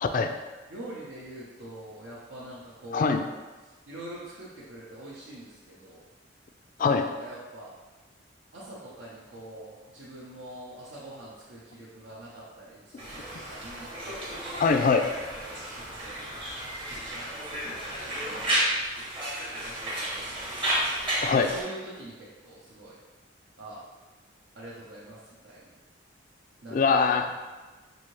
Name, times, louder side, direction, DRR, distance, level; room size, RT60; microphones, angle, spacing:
voice 1, 0.0-0.3 2.9-3.3 6.8-7.1 14.5-15.0 21.2-21.5 26.7-27.3, left 5 dB, 45° left, 7 dB, 0.3 m, -23 dB
voice 2, 0.7-3.2 3.9-6.0 6.8-7.7 8.5-14.4 15.3-16.5 16.9-17.3 17.6-17.8 18.2-18.8 19.5-20.8 21.3-23.0 23.6-23.8 24.6-25.2 25.4-25.6 26.6-26.8, right 1 dB, 75° right, -8 dB, 0.8 m, -44 dB
Conversation, 13.0-21.6, right 1 dB, 25° right, 0.9 m, -32 dB
5.5 x 2.6 x 3.1 m, 1.2 s
head